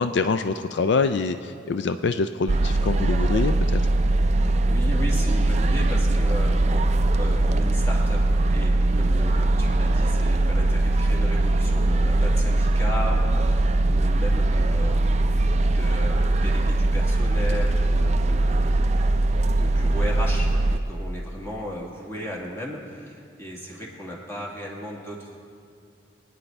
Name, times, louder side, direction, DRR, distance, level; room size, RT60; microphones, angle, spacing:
voice 1, 0.0-3.8, left 4 dB, 65° left, 9 dB, 0.4 m, -25 dB
sound 1, 2.5-20.8, right 2 dB, 35° right, 0.4 m, -21 dB
voice 2, 4.4-18.8 19.4-25.4, equal, 15° left, -3 dB, 1.8 m, -35 dB
23.5 x 9.7 x 3.3 m, 2.3 s
head